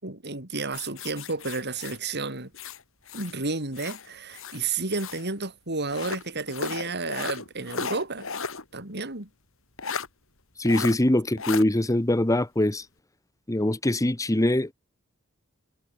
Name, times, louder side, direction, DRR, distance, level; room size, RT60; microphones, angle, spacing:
voice 1, 0.0-2.5 3.1-8.3 8.7-9.3, right 3 dB, 55° right, 4.8 m, -31 dB
sound 1, 0.7-3.4 3.7-5.3 5.9-8.6 9.0-9.1 9.8-10.1 10.7-11.0 11.4-11.6, left 5 dB, 70° left, 4.4 m, -35 dB
voice 2, 10.6-12.9 13.5-14.7, left 1 dB, 15° left, 1.0 m, -23 dB
head